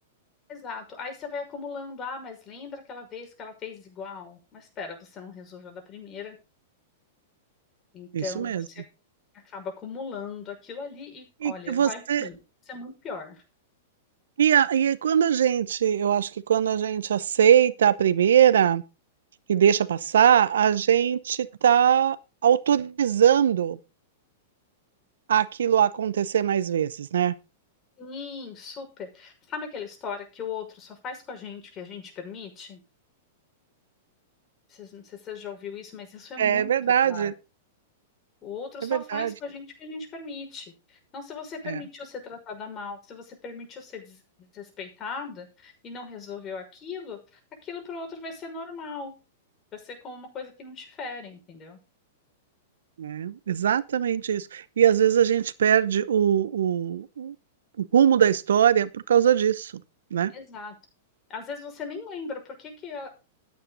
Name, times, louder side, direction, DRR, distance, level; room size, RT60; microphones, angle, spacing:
voice 1, 0.5-6.4 7.9-8.8 9.4-12.4 12.7-13.4 28.0-32.8 34.7-37.3 38.4-44.2 44.5-47.2 47.6-49.1 49.7-51.8 60.3-60.7 61.3-63.1, left 5 dB, 30° left, 6.0 m, -38 dB
voice 2, 8.1-8.6 11.4-12.3 14.4-18.8 19.5-22.2 22.4-23.8 25.3-27.3 36.4-37.3 38.8-39.3 41.7-41.8 53.0-57.3 57.8-59.7 60.1-60.3, right 9 dB, 75° right, 0.8 m, -21 dB
13.5 x 9.5 x 4.0 m
hypercardioid pair, 110°, 0 cm